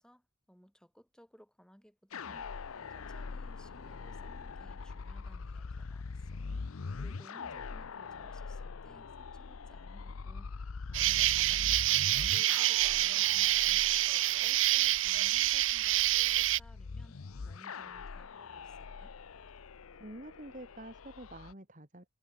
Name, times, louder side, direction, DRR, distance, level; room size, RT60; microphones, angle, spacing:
voice 1, 0.0-19.2, equal, 5° left, 6.3 m, -60 dB
sound 1, 2.1-21.5, left 4 dB, 85° left, 0.7 m, -43 dB
Insect, 10.9-16.6, right 15 dB, 65° right, 0.6 m, -27 dB
voice 2, 20.0-22.1, right 1 dB, 35° right, 3.7 m, -47 dB
head